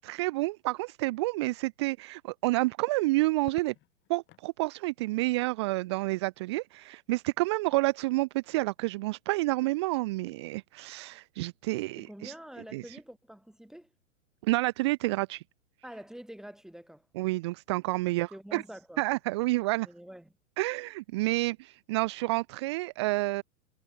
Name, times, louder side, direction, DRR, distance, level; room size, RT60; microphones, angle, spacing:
voice 1, 0.0-3.7 4.1-12.3 12.7-13.0 14.4-15.4 17.2-18.6 19.0-19.9 20.6-23.4, right 21 dB, 20° right, 0.4 m, -29 dB
Crackle, 3.4-4.5 6.1-6.7, left 15 dB, 25° left, 2.9 m, -53 dB
voice 2, 12.0-13.9 15.8-17.1 18.1-19.0 19.8-20.3, equal, ahead, 6.5 m, -46 dB
figure-of-eight pair, 105°, 41 cm